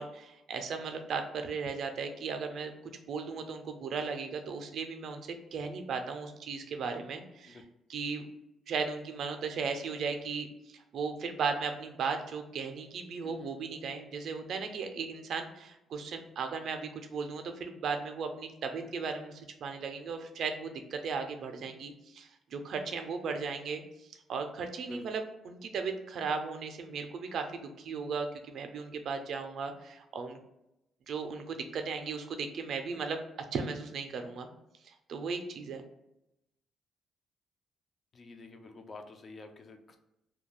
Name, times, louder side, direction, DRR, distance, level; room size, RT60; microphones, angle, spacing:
voice 1, 0.0-2.7 3.0-7.6 7.9-8.3 8.7-23.8 24.3-30.4 31.1-33.2 33.5-34.5 34.8-35.8, right 5 dB, 65° right, 6 dB, 0.4 m, -36 dB
voice 2, 13.2-13.8 24.8-25.0 38.1-40.0, left 3 dB, 40° left, 6 dB, 0.4 m, -49 dB
2.3 x 2.2 x 3.0 m, 0.87 s
cardioid pair, 90°, 0 cm